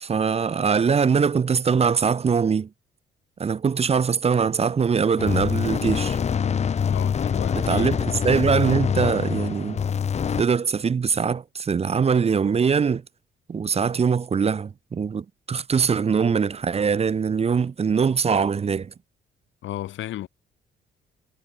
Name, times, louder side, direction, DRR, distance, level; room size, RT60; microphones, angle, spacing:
voice 1, 0.0-2.7 3.4-6.2 7.5-9.8 10.4-13.0 13.5-18.9, right 6 dB, 30° right, 0.6 m, -22 dB
sound 1, 5.2-10.4, left 7 dB, 35° left, 0.6 m, -25 dB
voice 2, 6.9-8.0 19.6-20.3, left 13 dB, 75° left, 1.2 m, -33 dB
cardioid pair, 90°, 20 cm